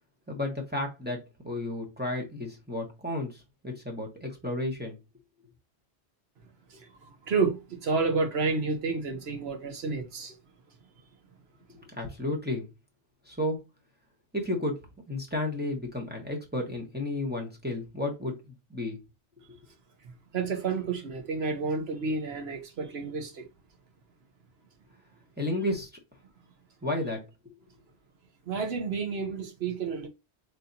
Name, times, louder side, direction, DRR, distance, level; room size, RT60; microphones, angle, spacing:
voice 1, 0.3-5.0 12.0-12.7 13.3-13.6 14.3-14.7 15.1-18.3 18.7-19.0 25.4-25.9 26.8-27.2, left 1 dB, 10° right, 1.1 m, -32 dB
voice 2, 6.7-10.3 20.3-23.5 28.5-30.1, right 4 dB, 60° right, 1.2 m, -30 dB
4.2 x 3.6 x 2.7 m
omnidirectional pair, 1.2 m